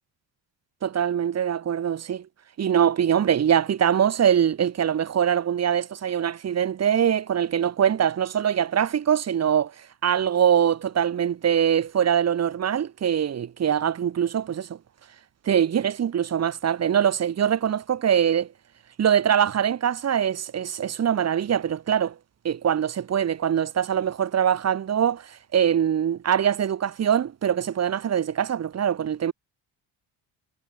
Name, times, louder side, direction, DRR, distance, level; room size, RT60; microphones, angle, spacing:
voice 1, 0.8-2.3 2.6-14.8 15.4-18.4 19.0-22.1 22.4-29.3, right 9 dB, 35° right, 1.4 m, -23 dB
cardioid pair, 175°, 44 cm